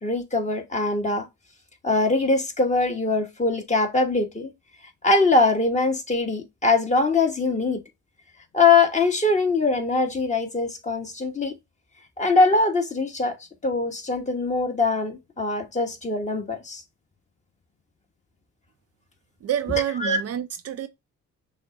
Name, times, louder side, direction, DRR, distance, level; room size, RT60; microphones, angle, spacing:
voice 1, 0.0-1.3 1.8-4.5 5.0-7.8 8.5-11.5 12.2-13.3 13.6-16.8 20.0-20.2, left 3 dB, 25° left, 1.4 m, -22 dB
voice 2, 19.4-20.9, right 10 dB, 55° right, 0.5 m, -27 dB
6.1 x 2.1 x 3.8 m
cardioid pair, 90°, 30 cm